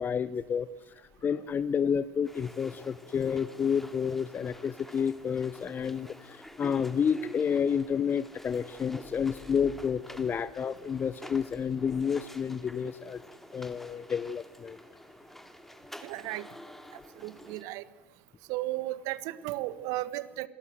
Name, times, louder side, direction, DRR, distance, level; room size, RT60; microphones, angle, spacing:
voice 1, 0.0-13.2 13.5-14.8, left 7 dB, 30° left, 15 dB, 0.8 m, -30 dB
sound 1, 2.2-17.6, left 1 dB, 5° left, 2.3 m, -49 dB
voice 2, 16.0-16.5 17.2-17.8 18.5-20.5, right 17 dB, 55° right, 16 dB, 1.4 m, -34 dB
27.5 x 20.0 x 7.9 m, 1.3 s
hypercardioid pair, 75°, 7 cm